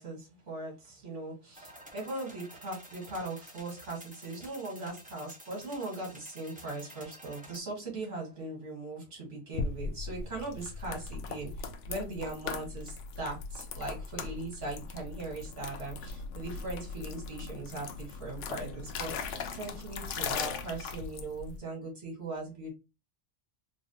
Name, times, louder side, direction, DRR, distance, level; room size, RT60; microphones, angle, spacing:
voice 1, 0.0-22.7, right 2 dB, 85° right, -3 dB, 2.2 m, -39 dB
sound 1, 1.5-7.6, right 1 dB, 10° right, 0.5 m, -51 dB
sound 2, 9.5-21.6, left 5 dB, 85° left, 0.9 m, -39 dB
3.9 x 2.1 x 2.8 m, 0.28 s
omnidirectional pair, 1.2 m